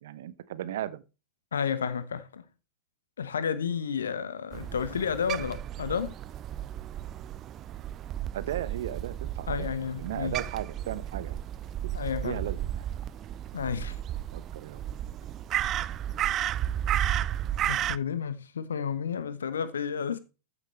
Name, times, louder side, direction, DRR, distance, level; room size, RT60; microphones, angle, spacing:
voice 1, 0.0-1.0 8.3-9.7 10.0-11.4 12.2-12.9 14.3-14.8, right 11 dB, 55° right, 0.9 m, -36 dB
voice 2, 1.5-2.4 3.2-6.1 9.5-10.4 11.9-12.4 13.5-14.0 17.7-20.2, left 7 dB, 70° left, 1.2 m, -31 dB
Crow, 4.5-18.0, right 11 dB, 30° right, 0.4 m, -33 dB
14.0 x 7.2 x 3.2 m
figure-of-eight pair, 90°, 0 cm